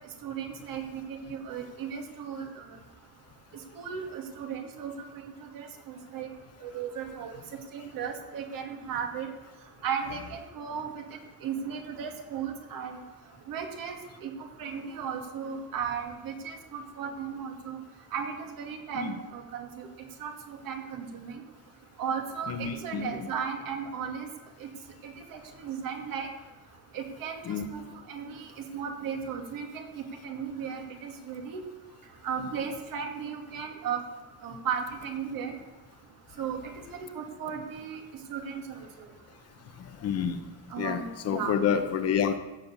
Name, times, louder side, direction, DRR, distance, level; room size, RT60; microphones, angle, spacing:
voice 1, 0.2-2.6 3.8-6.3 6.6-7.4 7.7-9.3 9.8-11.0 11.4-13.0 13.5-14.0 14.2-14.3 14.6-17.8 18.1-19.9 20.2-21.4 22.0-24.3 24.6-24.7 25.0-26.3 26.9-27.4 27.7-27.8 28.1-28.5 28.7-31.6 32.2-34.0 34.4-35.5 36.4-36.7 37.0-38.0 38.3-38.6 40.7-41.6, right 7 dB, 60° right, 3 dB, 2.4 m, -35 dB
voice 2, 22.5-23.1 27.5-27.7 39.8-40.4 40.8-42.4, left 7 dB, 40° left, 9 dB, 0.9 m, -29 dB
16.0 x 7.4 x 7.0 m, 1.1 s
cardioid pair, 175°, 37 cm